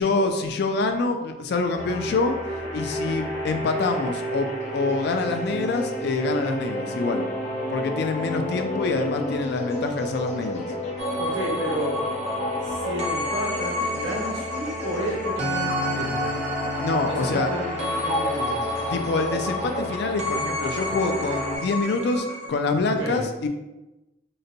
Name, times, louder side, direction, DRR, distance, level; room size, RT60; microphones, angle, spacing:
voice 1, 0.0-2.4 2.7-7.3 7.7-10.7 16.8-17.5 18.8-23.5, left 3 dB, 65° left, 6 dB, 0.3 m, -26 dB
sound 1, 1.7-21.6, left 2 dB, 40° left, 0.7 m, -32 dB
Wind instrument woodwind instrument, 1.9-8.3, right 5 dB, 5° right, 0.8 m, -36 dB
sound 2, 11.0-22.5, equal, 35° right, 0.6 m, -30 dB
voice 2, 11.2-12.0 12.6-16.3 17.1-18.6 22.9-23.2, right 1 dB, 85° right, -5 dB, 1.2 m, -32 dB
3.8 x 2.2 x 2.7 m, 1.0 s
head